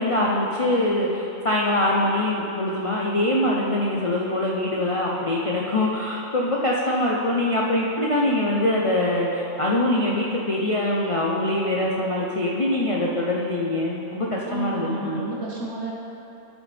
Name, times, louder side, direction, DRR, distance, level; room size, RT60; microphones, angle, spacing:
voice 1, 0.0-15.2, left 1 dB, 35° left, -4 dB, 0.5 m, -23 dB
voice 2, 14.5-15.9, right 3 dB, 55° right, -4 dB, 1.7 m, -31 dB
11.5 x 6.1 x 3.4 m, 2.8 s
omnidirectional pair, 1.5 m